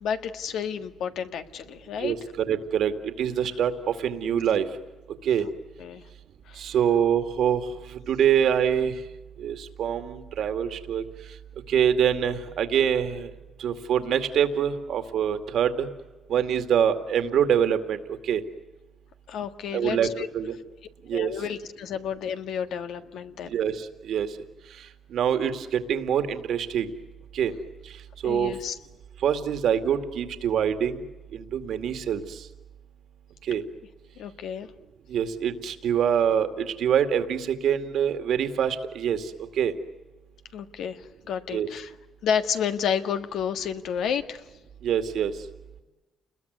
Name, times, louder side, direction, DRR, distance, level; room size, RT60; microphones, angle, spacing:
voice 1, 0.0-2.1 5.4-5.5 5.8-6.0 6.5-6.6 19.3-20.3 21.1-23.5 28.2-28.8 34.2-34.7 40.5-41.9 42.2-44.4, left 7 dB, 80° left, 8 dB, 1.7 m, -31 dB
voice 2, 2.0-4.7 5.2-5.4 6.6-8.9 9.4-11.0 11.7-13.3 13.6-15.9 16.3-18.4 19.7-20.5 21.1-21.3 23.5-24.3 25.1-26.9 27.3-27.5 28.2-28.5 29.2-31.0 31.3-32.4 33.4-33.6 35.1-39.7 41.5-41.7 44.8-45.3, right 8 dB, 70° right, 9 dB, 2.3 m, -25 dB
29.0 x 21.0 x 9.5 m, 1.1 s
cardioid pair, 90°, 0 cm